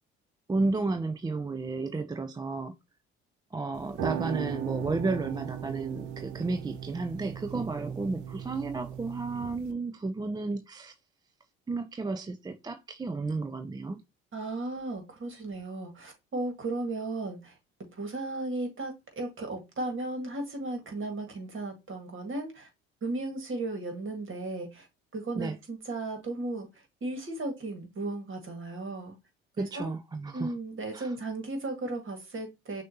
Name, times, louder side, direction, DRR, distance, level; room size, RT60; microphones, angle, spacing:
voice 1, 0.5-2.7 3.5-10.9 11.7-14.0 25.3-25.6 29.6-30.5 30.9-31.1, right 3 dB, 15° right, 0.4 m, -32 dB
sound 1, 3.7-9.7, right 9 dB, 65° right, 0.7 m, -37 dB
voice 2, 14.3-17.5 17.9-22.7 23.0-24.9 25.1-26.7 27.0-29.2 29.6-29.9 30.3-32.8, right 2 dB, 40° right, 1.9 m, -35 dB
6.2 x 2.7 x 2.8 m
hypercardioid pair, 60°, 32 cm